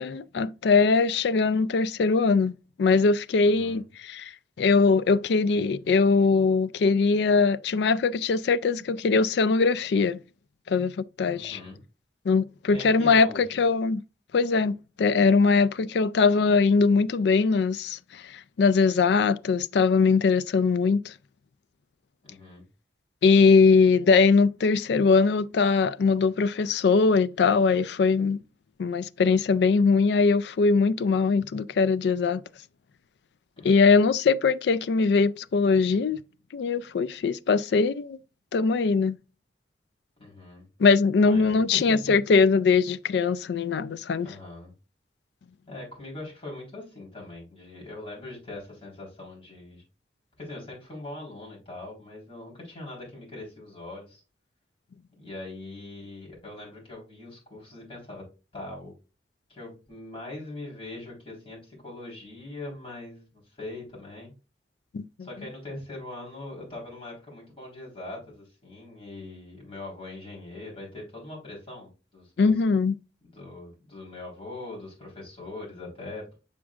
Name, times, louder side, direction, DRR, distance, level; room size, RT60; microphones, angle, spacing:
voice 1, 0.0-2.5 2.8-4.3 4.6-10.2 10.7-11.6 12.3-14.0 14.3-21.1 23.2-28.4 28.8-32.4 33.6-36.2 36.5-38.2 38.5-39.2 40.8-44.3 64.9-65.0 72.4-73.0, left 4 dB, 65° left, 0.3 m, -21 dB
voice 2, 3.4-3.8 11.3-11.8 12.7-13.4 22.2-22.6 33.6-34.0 40.2-40.7 41.2-42.2 44.2-44.7 45.7-49.8 50.4-54.2 55.2-58.2 58.5-58.9 59.5-64.3 65.2-72.5 73.2-76.4, left 2 dB, 30° left, 3.7 m, -41 dB
7.4 x 6.0 x 2.3 m
head